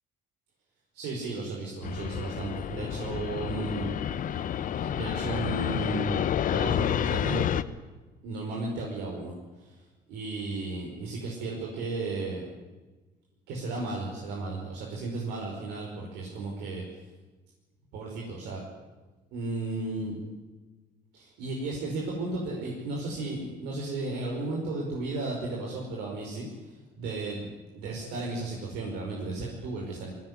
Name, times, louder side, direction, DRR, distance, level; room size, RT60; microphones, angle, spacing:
voice 1, 0.9-3.9 4.8-7.5 8.2-9.8 10.1-12.5 13.5-16.8 17.9-18.6 19.3-20.2 21.1-30.1, right 3 dB, 90° right, -2 dB, 5.4 m, -34 dB
Fixed-wing aircraft airplane, 1.8-7.6, left 9 dB, 50° left, 1.1 m, -29 dB
21.0 x 18.0 x 9.9 m, 1.2 s
cardioid pair, 110°, 17 cm